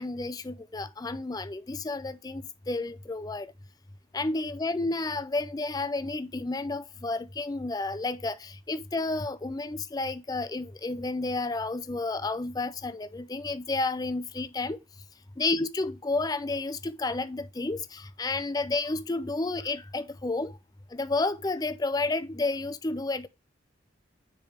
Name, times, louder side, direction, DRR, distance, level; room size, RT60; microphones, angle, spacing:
voice 1, 0.0-2.4 2.7-3.5 4.1-8.4 8.7-14.8 15.4-20.5 20.9-23.3, left 3 dB, 20° left, 0.4 m, -31 dB
7.1 x 3.4 x 4.9 m
head